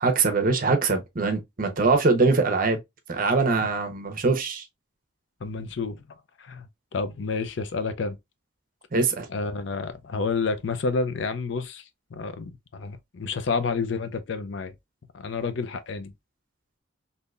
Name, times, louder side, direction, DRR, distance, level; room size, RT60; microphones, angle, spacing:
voice 1, 0.0-2.8 3.1-4.6 8.9-9.3, right 3 dB, 45° right, 0.8 m, -22 dB
voice 2, 5.4-6.1 6.4-6.7 6.9-8.2 9.3-11.8 12.1-14.7 15.1-16.1, left 4 dB, 65° left, 0.5 m, -29 dB
3.7 x 2.7 x 2.4 m
head